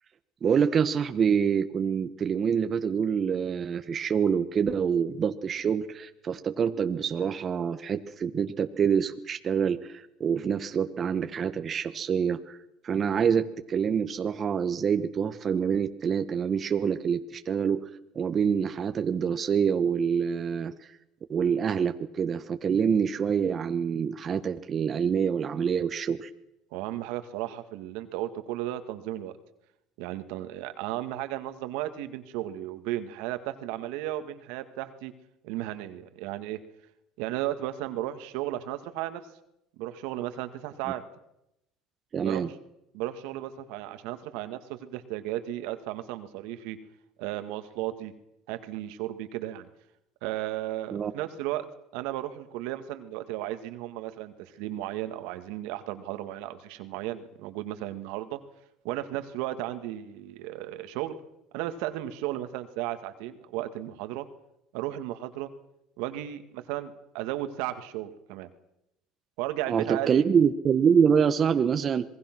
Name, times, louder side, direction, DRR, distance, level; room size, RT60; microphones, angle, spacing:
voice 1, 0.4-12.6 12.8-17.9 18.1-21.0 21.3-26.3 42.1-42.5 50.9-51.1 69.7-72.0, right 7 dB, 40° right, 8 dB, 1.3 m, -26 dB
voice 2, 26.7-29.4 30.0-35.1 35.4-36.6 37.2-39.3 39.8-41.0 42.2-42.5 42.9-46.8 47.2-48.1 48.5-49.7 50.2-51.7 51.9-58.4 58.8-61.2 61.5-64.3 64.7-65.5 66.0-68.5 69.4-70.2, right 14 dB, 75° right, 9 dB, 2.0 m, -34 dB
27.0 x 20.5 x 6.2 m, 0.84 s
supercardioid pair, 90°, 0 cm